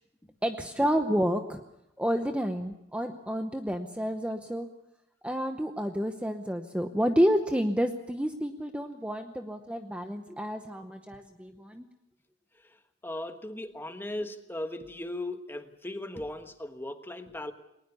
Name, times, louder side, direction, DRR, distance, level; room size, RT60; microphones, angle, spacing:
voice 1, 0.4-1.6 2.0-4.7 5.2-11.9, equal, 5° right, 6 dB, 0.8 m, -29 dB
voice 2, 13.0-17.5, left 1 dB, 10° left, 7 dB, 1.2 m, -37 dB
20.5 x 19.5 x 6.9 m, 0.85 s
head